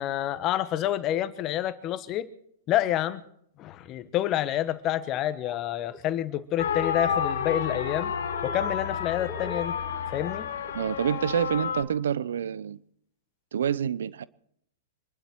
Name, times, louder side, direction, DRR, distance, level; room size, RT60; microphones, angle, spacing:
voice 1, 0.0-2.3 2.7-3.2 3.6-8.1 8.4-9.8 10.1-10.5, left 12 dB, 35° left, 1.2 m, -28 dB
Laughter, 5.1-5.6 5.9-7.3 7.6-8.0 8.3-11.2, left 2 dB, ahead, 3.1 m, -44 dB
sound 1, 6.6-11.8, left 7 dB, 70° left, 2.6 m, -30 dB
voice 2, 10.7-12.8 13.5-14.2, right 8 dB, 80° right, 0.7 m, -27 dB
26.0 x 11.5 x 4.6 m
hypercardioid pair, 120°, 0 cm